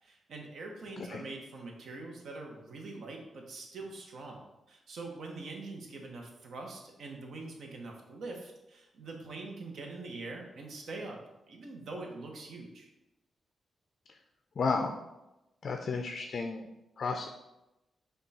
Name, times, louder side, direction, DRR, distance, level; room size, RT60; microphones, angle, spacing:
voice 1, 0.0-11.2 11.5-12.9, right 3 dB, 70° right, 1 dB, 0.8 m, -44 dB
voice 2, 14.6-15.0 15.6-16.7 17.0-17.3, left 4 dB, 60° left, 4 dB, 0.4 m, -32 dB
5.2 x 2.3 x 4.1 m, 0.95 s
cardioid pair, 85°, 0 cm